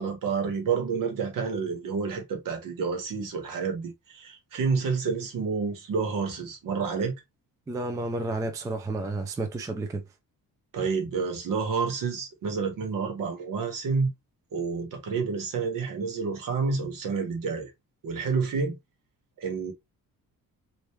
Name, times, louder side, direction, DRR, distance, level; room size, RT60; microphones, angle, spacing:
voice 1, 0.0-7.1 10.7-14.1 14.5-17.7 18.0-18.8 19.4-19.7, right 5 dB, 60° right, 1.3 m, -29 dB
voice 2, 7.7-10.0, right 2 dB, 10° right, 0.3 m, -31 dB
3.4 x 2.6 x 3.0 m
cardioid pair, 180°, 36 cm